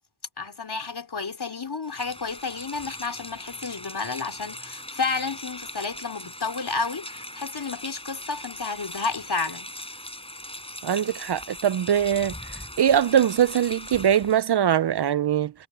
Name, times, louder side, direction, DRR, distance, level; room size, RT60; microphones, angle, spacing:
voice 1, 0.4-9.7, left 4 dB, 55° left, 4.1 m, -31 dB
Rain, 1.8-14.4, left 1 dB, 10° left, 5.3 m, -40 dB
voice 2, 10.8-12.3 12.8-15.5, right 9 dB, 60° right, 0.5 m, -22 dB
wide cardioid pair, 70°, 46 cm